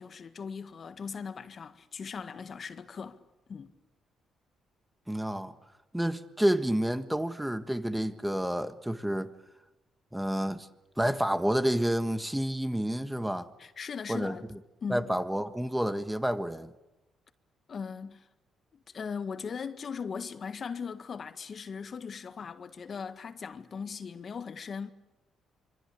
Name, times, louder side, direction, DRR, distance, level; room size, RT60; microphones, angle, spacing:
voice 1, 0.0-3.2 3.5-3.7 13.6-14.5 14.8-15.1 17.7-18.3 18.7-24.9, left 6 dB, 45° left, 1.7 m, -39 dB
voice 2, 5.1-5.5 5.9-9.3 10.1-10.7 11.0-13.5 14.1-14.3 14.9-16.7, equal, 5° right, 1.6 m, -29 dB
26.5 x 24.5 x 8.6 m
cardioid pair, 90°, 0 cm